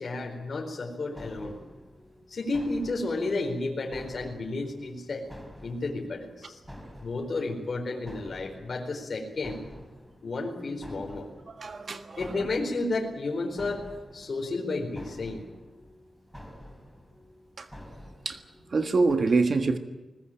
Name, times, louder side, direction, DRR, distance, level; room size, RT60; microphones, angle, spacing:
voice 1, 0.0-1.6 2.3-5.2 5.6-6.6 7.0-9.6 10.2-11.3 12.2-15.4, left 2 dB, 50° left, 0 dB, 4.4 m, -32 dB
sound 1, 1.1-19.1, equal, ahead, 3.8 m, -49 dB
voice 2, 11.5-12.4 17.6-17.7 18.2-18.4 18.7-19.8, right 3 dB, 50° right, 8 dB, 1.5 m, -25 dB
21.5 x 20.0 x 9.1 m, 1.1 s
wide cardioid pair, 125°, 0 cm